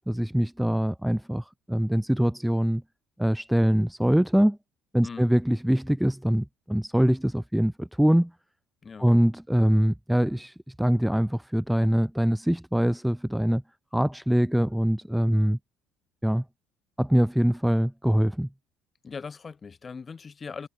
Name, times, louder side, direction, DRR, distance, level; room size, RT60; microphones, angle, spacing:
voice 1, 0.1-2.8 3.2-4.6 4.9-8.3 9.0-13.6 13.9-15.6 16.2-16.4 17.0-18.5, equal, ahead, 0.8 m, -23 dB
voice 2, 19.0-20.7, left 5 dB, 20° left, 4.6 m, -40 dB
cardioid pair, 165°, 0 cm